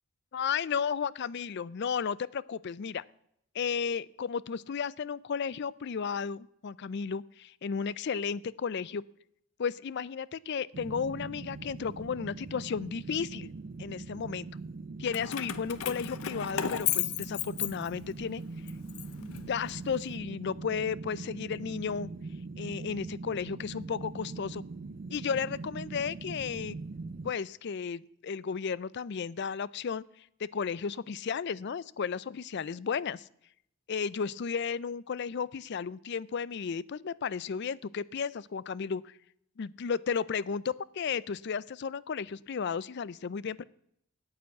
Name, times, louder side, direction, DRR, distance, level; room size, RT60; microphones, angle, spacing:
voice 1, 0.3-3.0 3.5-9.0 9.6-13.5 13.8-14.5 15.0-18.4 19.2-22.1 22.6-24.6 25.1-26.8 27.2-33.3 33.9-39.1 39.6-43.6, left 6 dB, 50° left, 21 dB, 0.4 m, -34 dB
sound 1, 10.7-27.3, right 3 dB, 40° right, 0.4 m, -42 dB
Keys jangling, 15.1-18.2 18.7-20.0, left 11 dB, 75° left, 0.7 m, -34 dB
9.2 x 8.7 x 8.3 m, 0.74 s
head